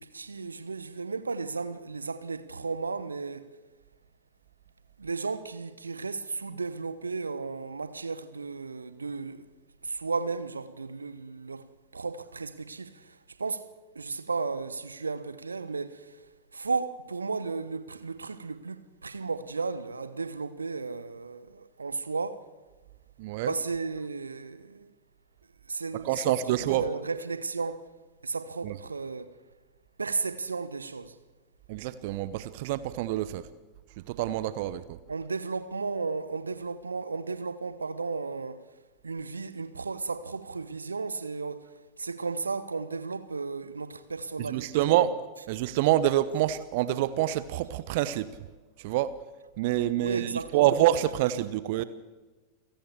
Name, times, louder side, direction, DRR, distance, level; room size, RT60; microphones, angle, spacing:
voice 1, 0.0-3.5 5.0-9.5 9.8-13.7 13.9-16.2 16.5-22.4 23.4-24.9 25.7-26.4 26.8-27.9 28.2-29.3 30.0-31.2 35.1-38.6 39.0-45.1 50.0-50.8, right 4 dB, 75° right, 1.1 m, -34 dB
voice 2, 23.2-23.5 26.0-26.8 28.6-28.8 31.7-33.4 34.1-35.0 44.4-45.1 45.5-48.3 48.8-49.1 49.6-51.8, right 13 dB, 50° right, 0.9 m, -26 dB
28.5 x 17.0 x 7.2 m
figure-of-eight pair, 90°, 0 cm